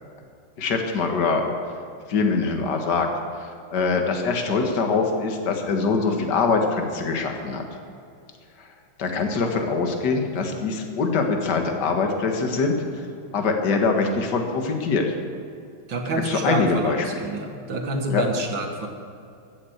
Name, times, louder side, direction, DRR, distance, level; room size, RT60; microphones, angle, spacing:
voice 1, 0.6-1.5 2.1-3.1 3.7-7.6 8.6-8.7 9.0-13.1 13.3-15.1 16.1-17.1 18.1-18.2, left 4 dB, 50° left, 4 dB, 2.0 m, -23 dB
voice 2, 15.9-18.9, right 2 dB, 60° right, 3 dB, 2.2 m, -27 dB
15.0 x 8.9 x 7.9 m, 2.5 s
omnidirectional pair, 2.4 m